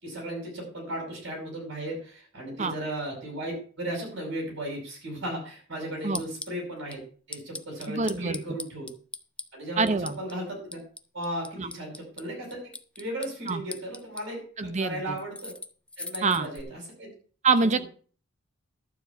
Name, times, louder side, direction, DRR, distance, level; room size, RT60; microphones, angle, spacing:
voice 1, 0.0-7.0 7.3-8.9 9.5-10.8 11.1-15.5 16.0-17.1, right 1 dB, 60° right, 0 dB, 5.5 m, -36 dB
sound 1, 6.0-6.6 6.9-7.0 7.3-9.5 9.9-10.3 10.7-12.3 12.5-14.2 15.2-16.6, left 3 dB, 5° left, 0.5 m, -39 dB
voice 2, 7.9-8.4 9.8-10.2 11.6-11.7 13.5-13.6 14.6-15.2 16.2-16.5 17.4-17.8, right 4 dB, 35° right, 12 dB, 0.7 m, -25 dB
12.0 x 4.2 x 8.1 m, 0.43 s
head